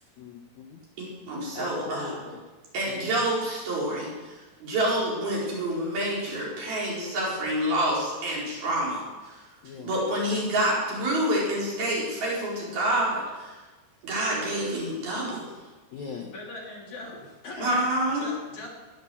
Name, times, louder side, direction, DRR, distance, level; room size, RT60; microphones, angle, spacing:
voice 1, 0.2-0.8 1.5-2.4 2.9-3.1 9.6-9.9 15.9-16.3, left 5 dB, 65° left, 1 dB, 2.0 m, -40 dB
voice 2, 1.0-2.2 2.7-9.4 9.8-13.5 14.0-15.5 17.6-18.3, right 1 dB, 65° right, -5 dB, 6.4 m, -28 dB
voice 3, 16.3-17.8 18.1-18.7, left 2 dB, 45° left, -3 dB, 4.4 m, -40 dB
19.0 x 10.5 x 7.2 m, 1.2 s
omnidirectional pair, 4.7 m